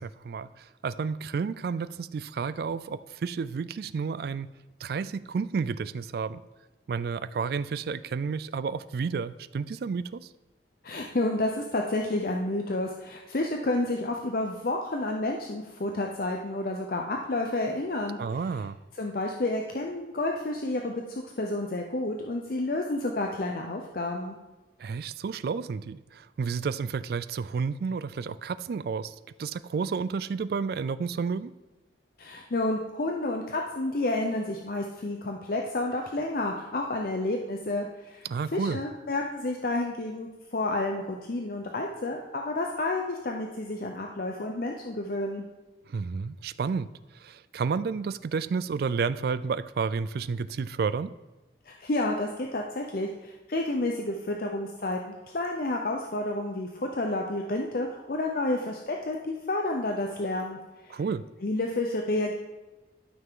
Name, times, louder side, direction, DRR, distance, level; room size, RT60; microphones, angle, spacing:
voice 1, 0.0-4.5 4.8-6.4 6.9-10.3 18.2-18.8 24.8-31.5 38.2-38.8 45.9-46.9 47.1-51.1 60.9-61.2, right 5 dB, 55° right, 15 dB, 0.3 m, -31 dB
voice 2, 10.8-18.2 19.0-24.4 32.2-38.3 38.5-45.4 51.7-60.6 60.8-61.0 61.4-62.4, left 2 dB, 50° left, 2 dB, 0.7 m, -30 dB
12.5 x 5.8 x 3.7 m, 1.1 s
head